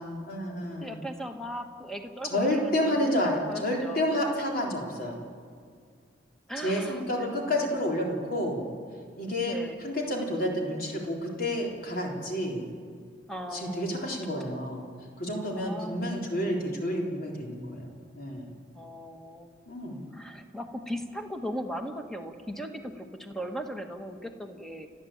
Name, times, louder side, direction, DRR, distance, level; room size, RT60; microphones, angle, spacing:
voice 1, 0.0-1.0 2.2-5.2 6.6-8.6 9.2-12.6 13.5-14.8 15.2-17.9 18.2-18.5 19.7-20.0, left 1 dB, 50° left, 0 dB, 3.8 m, -30 dB
voice 2, 0.8-4.1 6.5-7.7 9.4-9.8 13.3-14.0 15.6-16.2 18.7-19.5 19.9-25.0, equal, ahead, 5 dB, 1.4 m, -38 dB
29.5 x 10.5 x 8.7 m, 2.1 s
head